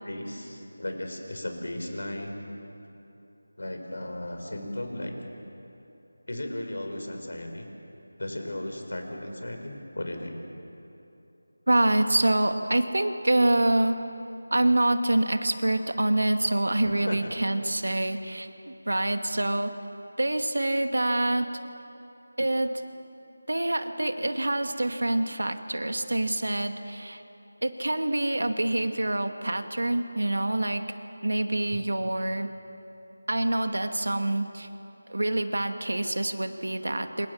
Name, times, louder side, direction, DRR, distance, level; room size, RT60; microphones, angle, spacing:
voice 1, 0.0-2.5 3.6-5.1 6.3-7.7 8.2-10.4 16.8-17.3 17.9-18.0 31.7-31.8, left 1 dB, 75° left, 4 dB, 6.1 m, -35 dB
voice 2, 11.7-14.0 14.5-19.7 20.2-21.5 22.4-22.8 23.5-27.2 27.6-30.9 31.2-32.5 33.3-34.7 35.1-37.3, right 1 dB, 90° right, 7 dB, 2.3 m, -26 dB
28.0 x 26.5 x 7.4 m, 2.9 s
figure-of-eight pair, 175°, 0 cm